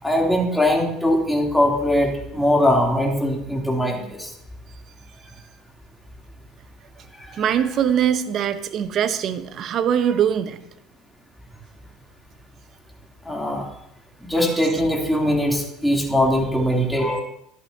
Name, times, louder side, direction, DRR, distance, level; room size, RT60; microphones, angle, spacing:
voice 1, 0.0-4.3 7.2-7.3 13.2-13.7 14.2-17.2, left 1 dB, 5° left, -2 dB, 3.0 m, -21 dB
voice 2, 7.3-10.6 14.4-14.6, right 9 dB, 50° right, 11 dB, 0.9 m, -22 dB
13.0 x 11.0 x 2.8 m, 0.77 s
hypercardioid pair, 75°, 0 cm